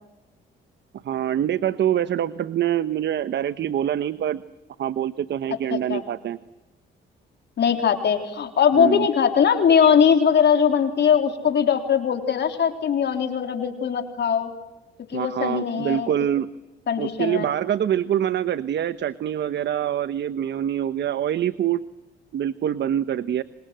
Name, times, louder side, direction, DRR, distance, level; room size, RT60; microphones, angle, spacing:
voice 1, 1.0-4.4 4.8-6.4 8.8-9.1 15.1-16.5 17.0-21.8 22.3-23.4, right 10 dB, 60° right, 13 dB, 1.0 m, -25 dB
voice 2, 5.7-6.0 7.6-14.5 15.1-16.1 16.9-17.5, left 7 dB, 60° left, 5 dB, 3.8 m, -20 dB
30.0 x 25.0 x 7.7 m, 1.1 s
cardioid pair, 90°, 20 cm